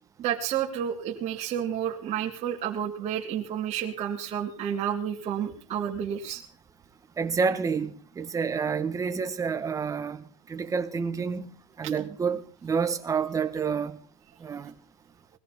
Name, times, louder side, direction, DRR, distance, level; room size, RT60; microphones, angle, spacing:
voice 1, 0.2-6.4 11.8-11.9, right 9 dB, 45° right, 2.9 m, -30 dB
voice 2, 7.2-11.5 11.8-14.0 14.4-14.7, right 5 dB, 20° right, 1.6 m, -29 dB
21.0 x 14.5 x 4.3 m
supercardioid pair, 125°, 16 cm